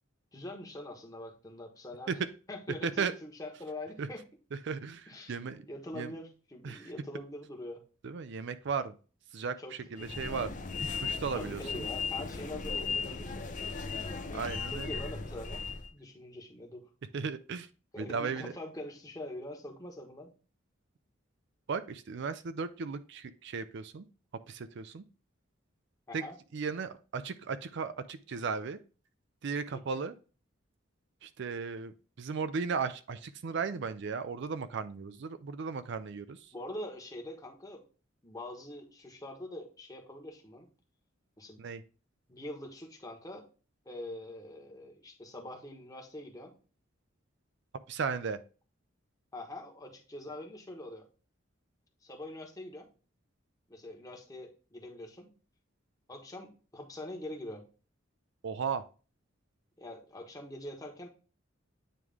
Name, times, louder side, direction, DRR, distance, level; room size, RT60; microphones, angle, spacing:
voice 1, 0.3-2.1 2.5-4.2 5.1-5.4 5.7-7.8 9.6-9.7 10.0-10.1 11.3-13.7 14.7-15.6 15.9-16.8 17.9-20.3 26.1-26.3 29.7-30.0 36.5-37.8 38.2-40.7 41.4-41.6 42.3-43.4 43.8-46.5 49.3-51.1 52.0-52.9 53.7-55.3 56.1-57.6 59.8-61.1, left 1 dB, 20° left, 0 dB, 1.3 m, -44 dB
voice 2, 2.8-3.1 4.0-4.1 4.5-5.6 5.9-6.1 6.6-6.9 8.0-8.9 9.3-10.5 11.0-11.9 14.3-15.0 17.1-17.7 18.0-18.5 21.7-24.1 24.5-25.0 26.1-26.2 26.5-28.8 29.4-30.2 31.2-36.5 41.6-41.8 47.9-48.4 58.4-58.9, right 5 dB, 60° right, 12 dB, 0.5 m, -36 dB
sound 1, 10.0-15.9, left 4 dB, 40° left, 0.7 m, -37 dB
9.0 x 3.2 x 3.5 m, 0.35 s
head